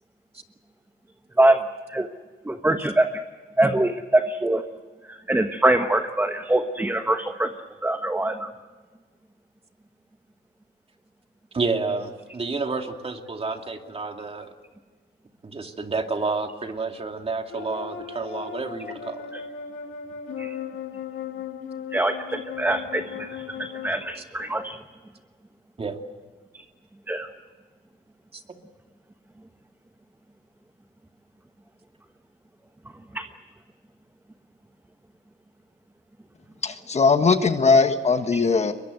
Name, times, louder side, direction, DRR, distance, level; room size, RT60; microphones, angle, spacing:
voice 1, 2.4-3.2 3.6-4.6 5.1-7.5 7.8-8.5 20.4-20.6 21.9-24.8 26.5-26.6 27.1-27.3 33.1-33.2 38.3-38.4, right 1 dB, 10° right, 7 dB, 1.2 m, -23 dB
voice 2, 11.5-14.5 15.4-19.3 24.2-24.3 25.8-26.0 28.3-28.4, right 4 dB, 30° right, 5 dB, 2.5 m, -30 dB
sound 1, 17.5-23.9, left 8 dB, 80° left, 2.3 m, -37 dB
voice 3, 36.6-38.7, left 4 dB, 35° left, 8 dB, 1.5 m, -19 dB
22.5 x 22.0 x 8.0 m, 1.4 s
cardioid pair, 90°, 20 cm